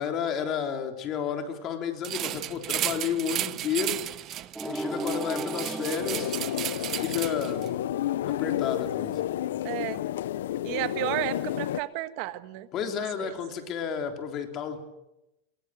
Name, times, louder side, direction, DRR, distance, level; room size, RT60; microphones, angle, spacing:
voice 1, 0.0-4.0 4.6-6.4 6.9-7.7 8.3-9.2 12.7-14.8, left 7 dB, 35° left, 5 dB, 3.6 m, -31 dB
sound 1, 2.0-7.7, right 13 dB, 35° right, 1.0 m, -34 dB
sound 2, 4.6-7.5, right 1 dB, 5° right, 0.9 m, -35 dB
sound 3, 6.0-11.8, left 12 dB, 85° left, 0.8 m, -30 dB
voice 2, 9.6-10.0 10.6-12.7 12.9-13.3, right 16 dB, 55° right, 12 dB, 1.5 m, -32 dB
24.0 x 23.0 x 7.8 m, 0.92 s
supercardioid pair, 145°, 0 cm